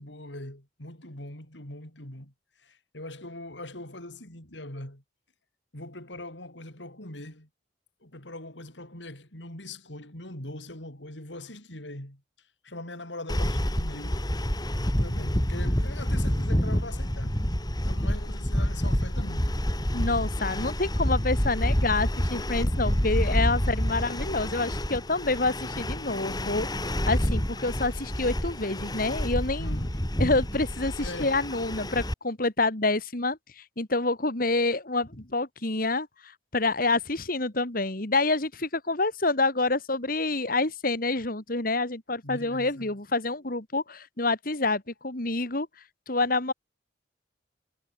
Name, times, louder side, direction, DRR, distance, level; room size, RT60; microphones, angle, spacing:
voice 1, 0.0-2.3 2.6-5.0 5.7-7.5 8.0-12.2 12.6-14.3 15.0-17.4 17.8-19.6 29.6-30.0 31.0-31.4 42.2-42.9, left 1 dB, 85° left, 6.9 m, -41 dB
sound 1, 13.3-32.1, equal, 20° left, 3.5 m, -28 dB
voice 2, 19.9-29.8 30.2-33.4 33.8-36.1 36.5-45.7 46.1-46.5, left 2 dB, 50° left, 2.8 m, -27 dB
head